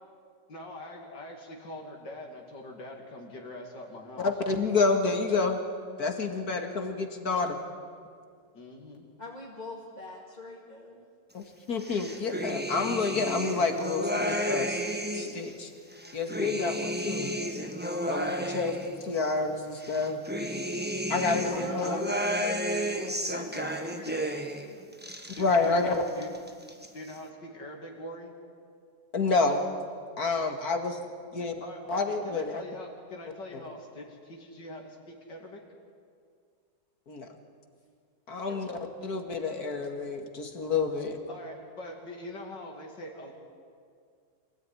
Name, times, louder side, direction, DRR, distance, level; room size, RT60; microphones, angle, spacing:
voice 1, 0.5-4.3 8.5-9.1 21.3-21.9 22.7-22.9 24.0-24.2 25.4-26.3 26.9-28.4 31.3-35.6 41.3-43.3, left 1 dB, 75° left, 0 dB, 3.2 m, -43 dB
voice 2, 4.2-5.6 6.0-7.6 11.3-14.8 15.1-15.7 16.1-17.3 18.0-20.2 21.1-22.0 25.4-26.0 29.1-29.7 30.2-31.0 31.3-31.5 31.9-32.6 37.1-37.3 38.3-41.2, left 4 dB, 60° left, 5 dB, 2.5 m, -29 dB
voice 3, 9.2-11.1 21.4-24.8 38.3-38.8, left 2 dB, 25° left, -4 dB, 2.7 m, -44 dB
sound 1, 11.8-15.4 15.9-19.3 19.8-24.7 24.9-25.8 26.1-26.9, equal, 5° right, 1.4 m, -32 dB
26.0 x 17.0 x 9.9 m, 2.2 s
omnidirectional pair, 1.9 m